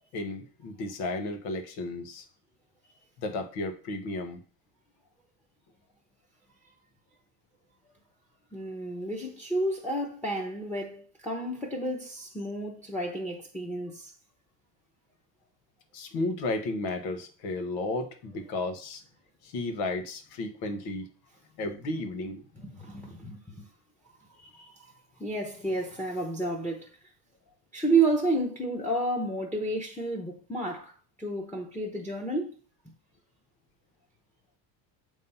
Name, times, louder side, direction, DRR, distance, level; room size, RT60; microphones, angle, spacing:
voice 1, 0.1-2.2 3.2-4.4 15.9-19.0 19.4-21.1 21.6-22.4 24.4-24.7, left 2 dB, 75° left, 1.4 m, -33 dB
voice 2, 8.5-14.1 22.6-23.7 25.2-26.9 27.7-32.6, right 2 dB, 5° left, 1.0 m, -31 dB
7.3 x 3.2 x 5.5 m
cardioid pair, 135°, 40 cm